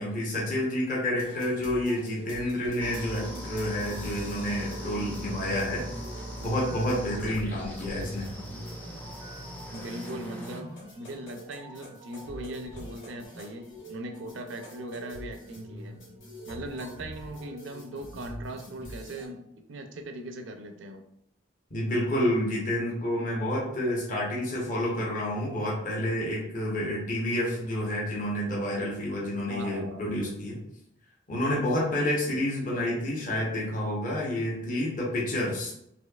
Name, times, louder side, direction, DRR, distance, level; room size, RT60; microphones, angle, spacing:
voice 1, 0.0-5.8 6.4-8.3 21.7-30.6 31.3-35.7, left 1 dB, 40° left, -4 dB, 0.9 m, -29 dB
sound 1, 1.1-19.2, right 1 dB, 75° left, 1.4 m, -45 dB
sound 2, 2.8-10.6, equal, 10° left, 0.4 m, -39 dB
voice 2, 9.7-16.0 16.5-19.4 19.7-21.0 29.5-30.0, right 1 dB, 75° right, 5 dB, 0.5 m, -39 dB
4.2 x 2.7 x 2.3 m, 0.77 s
head